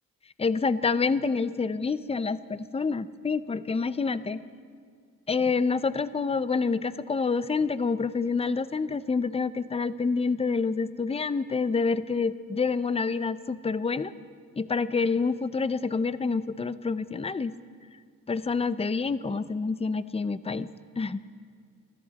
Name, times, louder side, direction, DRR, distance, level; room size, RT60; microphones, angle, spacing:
voice 1, 0.4-4.4 5.3-14.1 14.6-17.5 18.3-20.7 21.0-21.2, left 4 dB, 15° left, 15 dB, 0.5 m, -27 dB
24.0 x 13.5 x 4.0 m, 2.2 s
cardioid pair, 75°, 35 cm